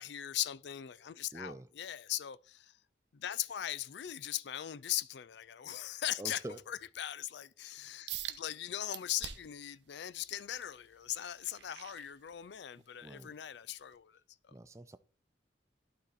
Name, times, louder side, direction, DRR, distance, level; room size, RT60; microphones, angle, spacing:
voice 1, 0.0-2.8 3.1-14.5, left 12 dB, 70° left, 0.4 m, -40 dB
voice 2, 1.3-1.7 6.2-6.6 13.0-13.4 14.5-15.0, right 2 dB, 15° right, 0.4 m, -45 dB
sound 1, 8.1-8.4 8.9-9.6 10.1-12.7 13.2-13.4 13.9-14.0, right 11 dB, 75° right, 0.7 m, -45 dB
11.5 x 4.3 x 4.0 m
head